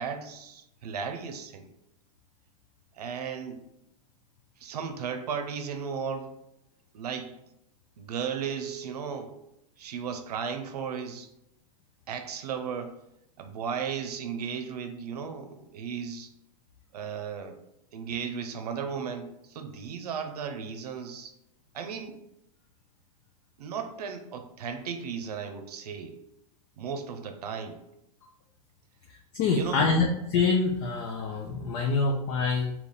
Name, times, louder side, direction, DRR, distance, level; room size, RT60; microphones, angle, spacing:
voice 1, 0.0-1.7 2.9-3.6 4.6-6.3 6.9-7.4 8.0-9.4 9.8-11.3 12.1-13.0 13.4-16.3 16.9-17.6 17.9-21.3 21.7-22.2 23.6-26.2 26.8-27.8 29.5-29.9, right 6 dB, 90° right, 7 dB, 0.7 m, -35 dB
voice 2, 29.1-32.7, left 4 dB, 40° left, 1 dB, 0.5 m, -26 dB
3.4 x 2.9 x 4.1 m, 0.84 s
supercardioid pair, 155°, 19 cm